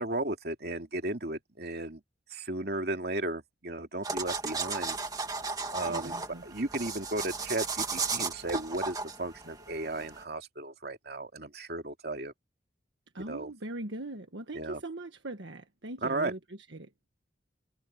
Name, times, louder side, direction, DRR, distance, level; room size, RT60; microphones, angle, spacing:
voice 1, 0.0-2.0 2.3-5.0 5.7-6.2 6.4-12.3 13.2-13.5 14.5-14.8 16.0-16.3, right 2 dB, 55° right, 2.9 m, -35 dB
sound 1, 4.0-10.2, right 4 dB, 20° right, 2.0 m, -35 dB
voice 2, 5.8-6.4 13.1-16.9, right 2 dB, 80° right, 1.5 m, -41 dB
head